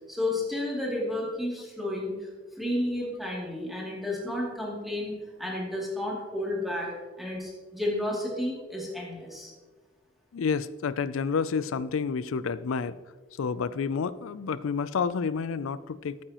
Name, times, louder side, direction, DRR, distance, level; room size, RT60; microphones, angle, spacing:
voice 1, 0.1-2.3 2.5-6.9 7.2-9.5, left 1 dB, ahead, -5 dB, 2.7 m, -32 dB
voice 2, 10.3-13.0 13.4-16.2, left 5 dB, 85° left, 17 dB, 0.4 m, -29 dB
13.5 x 8.7 x 3.0 m, 1.4 s
head